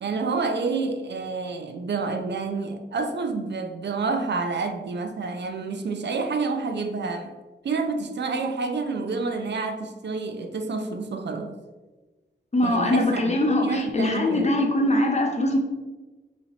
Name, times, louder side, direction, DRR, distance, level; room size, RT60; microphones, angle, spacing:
voice 1, 0.0-7.3 7.6-11.6 12.6-13.2 13.5-14.6, right 4 dB, 70° right, 0.4 m, -28 dB
voice 2, 12.5-15.6, left 1 dB, 40° left, 0.7 m, -22 dB
2.9 x 2.8 x 4.1 m
wide cardioid pair, 65°, 18 cm